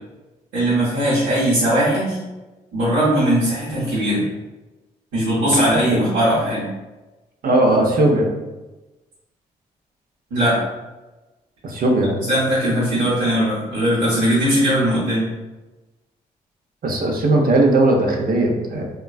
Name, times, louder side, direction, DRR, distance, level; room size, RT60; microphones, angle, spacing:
voice 1, 0.5-2.2 2.7-4.3 5.1-6.7 10.3-10.6 12.3-15.3, right 1 dB, 85° right, -10 dB, 0.9 m, -19 dB
voice 2, 7.4-8.3 11.6-12.1 16.8-18.9, right 2 dB, 55° right, 1 dB, 0.6 m, -17 dB
3.0 x 2.2 x 2.3 m, 1.1 s
hypercardioid pair, 40°, 18 cm